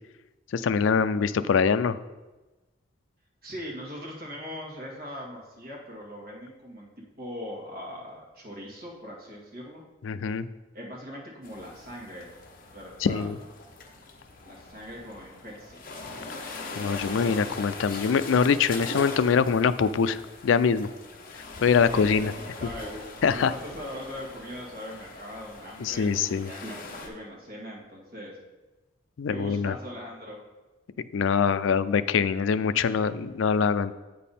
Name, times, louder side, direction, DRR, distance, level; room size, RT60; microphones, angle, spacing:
voice 1, 0.5-2.0 10.0-10.5 13.0-13.4 16.8-20.2 20.4-20.9 21.6-22.3 23.2-23.5 25.8-26.5 29.2-29.7 31.1-33.9, left 6 dB, 75° left, 13 dB, 0.4 m, -23 dB
voice 2, 3.4-6.9 7.2-9.8 10.7-12.3 12.7-13.3 14.4-16.0 17.9-18.2 21.9-28.4 29.3-30.4, equal, 50° right, -2 dB, 2.0 m, -41 dB
sound 1, 11.4-27.1, left 3 dB, 45° left, 1.0 m, -41 dB
8.3 x 5.3 x 4.3 m, 1.1 s
head